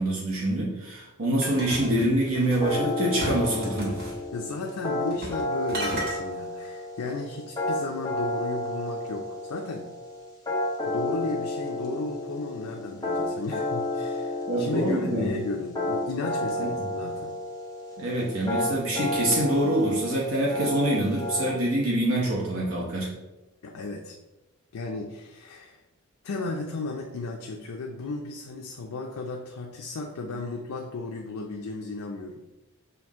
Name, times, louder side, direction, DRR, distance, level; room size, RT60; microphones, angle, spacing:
voice 1, 0.0-3.9 14.5-15.3 16.6-16.7 18.0-23.1, right 1 dB, 65° right, -3 dB, 0.9 m, -25 dB
sound 1, 1.4-2.7 3.2-4.2 5.1-5.4 5.7-6.2, equal, 45° right, 1.2 m, -34 dB
sound 2, 2.6-21.5, left 1 dB, 15° left, 0.9 m, -31 dB
voice 2, 4.3-9.9 10.9-17.3 23.6-24.2 24.7-25.8 26.2-32.4, left 3 dB, 85° left, 1 dB, 0.5 m, -34 dB
5.7 x 2.6 x 3.6 m, 1.0 s
head